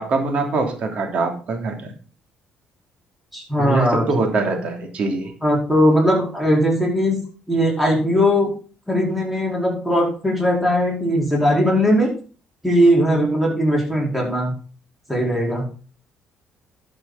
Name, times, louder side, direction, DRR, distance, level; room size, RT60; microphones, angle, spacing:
voice 1, 0.0-1.9 3.6-5.3, right 3 dB, 55° right, 3 dB, 3.1 m, -23 dB
voice 2, 3.3-4.0 5.4-7.2 7.5-8.5 8.9-12.1 12.6-14.5 15.1-15.7, equal, 5° right, -2 dB, 4.6 m, -19 dB
12.0 x 7.4 x 4.1 m, 0.39 s
cardioid pair, 100°, 3 cm